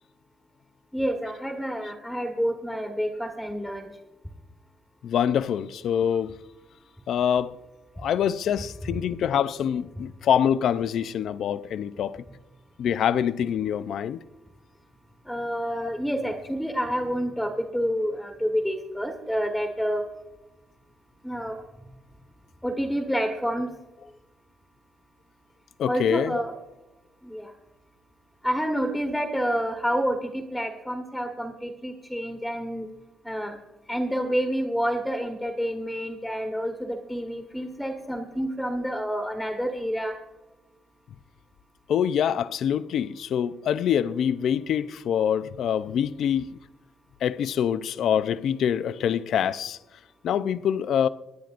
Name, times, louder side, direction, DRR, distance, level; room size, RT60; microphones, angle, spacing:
voice 1, 0.9-3.9 15.2-20.0 21.2-21.6 22.6-23.7 25.9-26.5 27.2-27.5 28.4-32.9 33.2-33.6 33.9-40.2, equal, ahead, 1.4 m, -28 dB
voice 2, 5.0-6.3 7.1-7.5 8.0-12.2 12.8-14.2 15.7-15.9 25.8-26.4 41.9-46.5 47.2-49.8 50.2-51.1, left 9 dB, 70° left, 0.5 m, -25 dB
25.5 x 10.5 x 2.5 m
cardioid pair, 90°, 0 cm